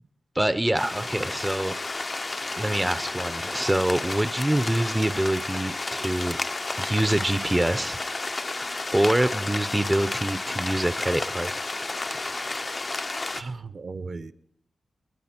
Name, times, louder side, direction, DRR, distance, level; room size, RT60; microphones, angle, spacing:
voice 1, 0.3-1.8 2.6-6.4 6.8-8.0 8.9-11.5 11.8-12.4, right 1 dB, 10° right, 0.6 m, -25 dB
sound 1, 0.8-13.4, left 3 dB, 30° left, 0.5 m, -31 dB
voice 2, 13.3-14.3, right 4 dB, 50° right, 0.8 m, -36 dB
29.0 x 10.5 x 4.4 m
wide cardioid pair, 130°, 0 cm